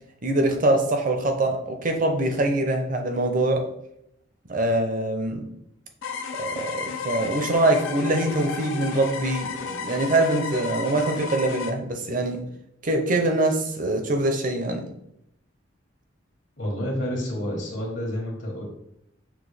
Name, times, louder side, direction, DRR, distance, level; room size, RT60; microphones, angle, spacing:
voice 1, 0.2-3.6 4.5-5.5 6.4-12.4 12.8-14.9, right 2 dB, 45° right, 4 dB, 0.6 m, -24 dB
sound 1, 6.0-11.7, left 5 dB, 85° left, 0.5 m, -33 dB
voice 2, 16.6-18.6, equal, 70° left, -1 dB, 1.3 m, -29 dB
5.9 x 2.2 x 3.3 m, 0.77 s
head